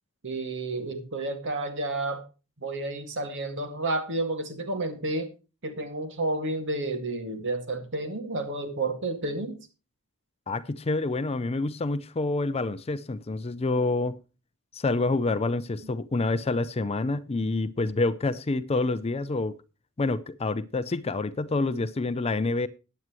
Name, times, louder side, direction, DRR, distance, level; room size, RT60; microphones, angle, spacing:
voice 1, 0.2-2.2 2.6-5.3 5.6-9.6, right 2 dB, 55° right, 2.1 m, -31 dB
voice 2, 10.5-14.2 14.7-19.5 20.0-22.7, left 3 dB, 25° left, 0.5 m, -27 dB
15.0 x 9.6 x 3.1 m
head